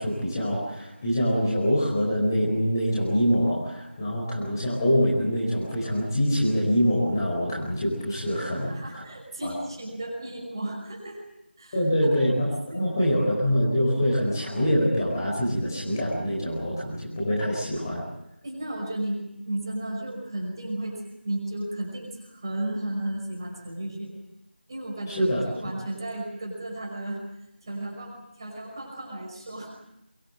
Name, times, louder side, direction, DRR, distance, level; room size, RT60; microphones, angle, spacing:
voice 1, 0.0-9.0 9.4-9.5 11.7-18.0 25.1-25.4, equal, 15° left, -4 dB, 4.9 m, -25 dB
voice 2, 8.3-11.2 11.6-12.1 12.7-12.9 18.4-24.1 24.7-27.2 27.6-29.7, right 1 dB, 20° right, -1 dB, 5.4 m, -34 dB
24.0 x 21.0 x 9.0 m, 0.84 s
figure-of-eight pair, 170°, 6 cm